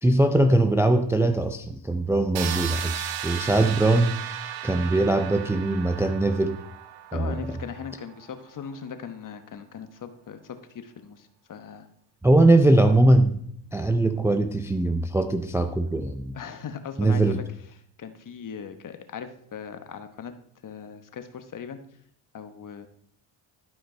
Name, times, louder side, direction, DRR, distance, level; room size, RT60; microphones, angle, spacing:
voice 1, 0.0-4.2 4.6-6.6 7.1-7.6 12.2-13.4 13.7-16.3 17.0-17.4, right 2 dB, 5° right, 7 dB, 0.4 m, -21 dB
sound 1, 2.4-8.2, right 11 dB, 90° right, 0.9 m, -35 dB
voice 2, 7.1-11.9 16.3-17.4 18.0-20.3 20.6-21.8 22.3-22.9, left 7 dB, 45° left, 9 dB, 1.1 m, -39 dB
12.0 x 5.1 x 4.3 m, 0.67 s
cardioid pair, 95°, 46 cm